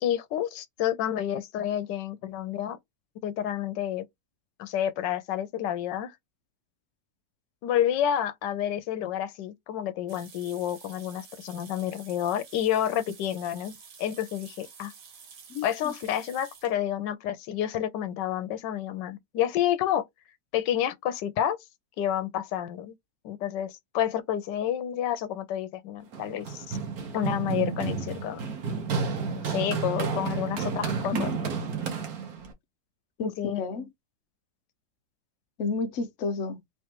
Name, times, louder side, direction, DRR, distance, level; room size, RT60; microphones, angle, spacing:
voice 1, 0.0-2.8 3.2-4.1 4.6-6.1 7.6-14.9 15.6-20.0 20.5-21.6 22.0-22.9 23.2-26.8 27.1-28.4 29.4-31.3 33.2-33.6, left 10 dB, 85° left, 1.3 m, -29 dB
sound 1, 10.1-16.8, right 6 dB, 85° right, 1.8 m, -50 dB
voice 2, 15.5-15.9 31.1-31.4 33.2-33.9 35.6-36.6, left 4 dB, 60° left, 0.8 m, -31 dB
Run, 26.1-32.5, right 5 dB, 60° right, 1.4 m, -31 dB
3.5 x 3.3 x 2.9 m
omnidirectional pair, 1.9 m